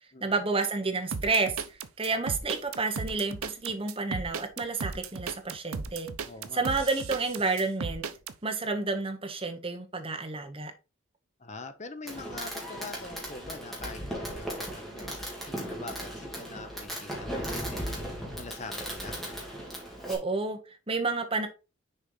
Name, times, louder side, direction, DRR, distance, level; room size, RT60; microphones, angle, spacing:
voice 1, 0.2-6.1 6.5-8.0 8.4-10.7 20.1-21.5, right 3 dB, 25° right, 1.0 m, -30 dB
sound 1, 1.1-8.3, right 4 dB, 85° right, 0.7 m, -35 dB
voice 2, 6.2-6.6 11.4-19.2, left 3 dB, 35° left, 0.8 m, -44 dB
Fireworks, 12.1-20.2, equal, ahead, 2.0 m, -37 dB
6.6 x 4.5 x 3.9 m
head